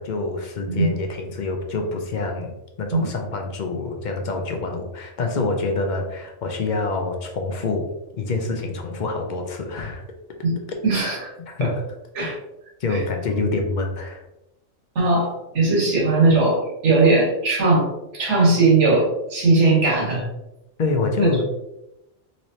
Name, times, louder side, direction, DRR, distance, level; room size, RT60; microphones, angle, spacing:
voice 1, 0.0-7.9 8.2-10.0 11.5-11.7 12.2-12.3 12.8-14.3 20.8-21.4, left 3 dB, 55° left, 3 dB, 0.5 m, -26 dB
voice 2, 10.8-11.3 11.6-11.7 12.1-12.3 12.9-13.0 14.9-17.9 18.1-20.3 21.2-21.3, right 3 dB, 65° right, -4 dB, 1.7 m, -19 dB
4.0 x 3.1 x 2.7 m, 0.93 s
omnidirectional pair, 1.3 m